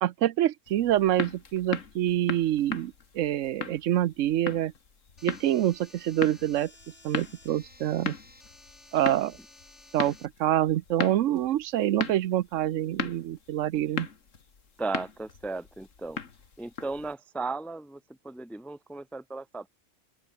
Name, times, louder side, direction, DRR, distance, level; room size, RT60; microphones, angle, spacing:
voice 1, 0.0-4.7 5.2-6.7 7.0-8.1 8.9-9.4 9.9-14.1, right 12 dB, 85° right, 1.0 m, -26 dB
sound 1, 0.7-17.1, left 5 dB, 90° left, 2.2 m, -38 dB
sound 2, 5.2-10.3, left 2 dB, 65° left, 5.7 m, -55 dB
voice 2, 14.8-16.2 16.6-18.0 18.2-19.7, right 3 dB, ahead, 0.5 m, -35 dB
open air
omnidirectional pair, 1.3 m